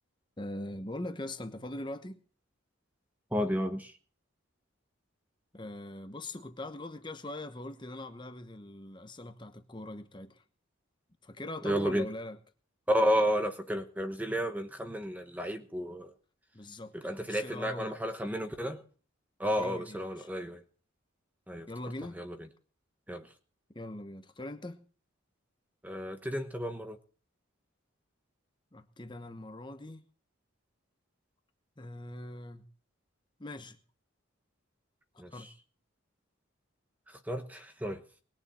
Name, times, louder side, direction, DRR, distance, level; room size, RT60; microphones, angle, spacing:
voice 1, 0.4-2.2 5.5-10.4 11.2-12.4 16.5-18.0 19.6-20.3 21.7-22.3 23.7-24.8 28.7-30.0 31.8-32.6 33.4-33.8 35.1-35.5, left 1 dB, 20° left, 8 dB, 1.0 m, -42 dB
voice 2, 3.3-3.9 11.6-12.1 12.9-16.1 16.9-18.8 19.4-20.6 21.5-21.7 22.2-22.4 23.1-23.3 25.8-27.0 35.2-35.3 37.3-38.0, equal, 5° right, 7 dB, 1.1 m, -32 dB
20.5 x 7.1 x 7.6 m, 0.42 s
head